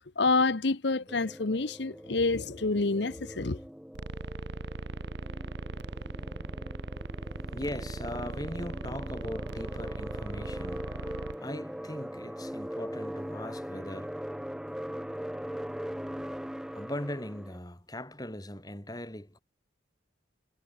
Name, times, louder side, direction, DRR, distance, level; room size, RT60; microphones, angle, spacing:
voice 1, 0.2-3.6, left 3 dB, 65° left, 1.0 m, -27 dB
sound 1, 1.1-17.6, equal, 5° right, 0.8 m, -41 dB
sound 2, 3.9-11.4, right 2 dB, 65° right, 0.8 m, -39 dB
voice 2, 7.5-11.0 11.4-14.4 16.7-19.4, left 1 dB, 20° left, 5.6 m, -40 dB
head